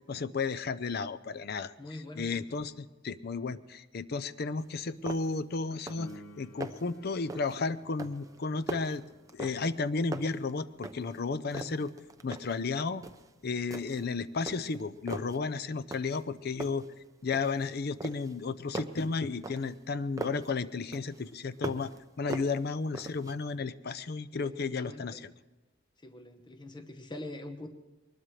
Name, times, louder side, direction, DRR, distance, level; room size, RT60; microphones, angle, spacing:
voice 1, 0.0-6.1 6.4-9.0 9.3-11.9 12.2-13.0 13.4-16.9 17.2-25.3, left 4 dB, 50° left, 13 dB, 0.5 m, -33 dB
voice 2, 1.8-2.4 11.6-11.9 24.3-25.2 26.0-27.7, left 1 dB, 25° left, 6 dB, 1.0 m, -44 dB
sound 1, 4.6-4.7 5.1-5.5 5.7-6.2 6.4-6.9 7.3-7.6 8.0-9.8 10.1-11.2 11.5-12.6 13.0-13.3 13.7-14.1 14.5-15.4 15.9-16.3 16.6-17.7 18.0-20.5 20.9-22.0 22.3-23.4, right 2 dB, 15° right, 0.6 m, -41 dB
Piano, 6.0-16.4 23.9-24.0, equal, 80° left, 1.1 m, -57 dB
22.5 x 20.0 x 3.2 m, 1.1 s
head